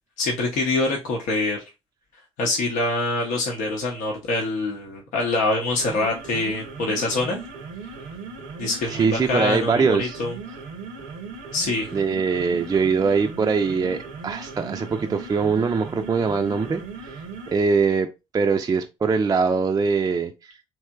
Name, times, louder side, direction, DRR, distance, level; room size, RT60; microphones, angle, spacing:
voice 1, 0.2-1.6 2.4-7.4 8.6-10.3 11.5-12.0, left 2 dB, 65° left, 0.7 m, -25 dB
sound 1, 5.7-17.6, right 4 dB, 75° right, 0.6 m, -38 dB
voice 2, 8.9-10.2 11.9-16.8 17.1-17.2 17.5-18.1 18.3-20.3, right 5 dB, 25° right, 0.4 m, -22 dB
3.3 x 2.9 x 2.2 m
hypercardioid pair, 50°, 14 cm